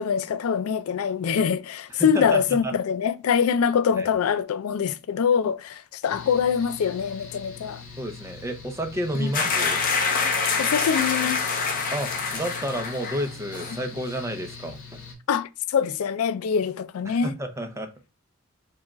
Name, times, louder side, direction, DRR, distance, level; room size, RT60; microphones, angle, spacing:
voice 1, 0.0-7.8 9.2-9.3 10.6-11.4 15.3-17.3, left 7 dB, 90° left, 0.4 m, -24 dB
voice 2, 2.0-2.7 3.9-4.1 8.0-9.8 11.9-14.8 17.1-17.9, right 1 dB, 15° right, 0.5 m, -31 dB
Mechanical fan, 6.1-15.1, left 5 dB, 70° left, 1.6 m, -42 dB
sound 1, 9.3-13.3 13.5-13.8, left 5 dB, 40° left, 0.8 m, -26 dB
4.7 x 2.4 x 2.9 m
head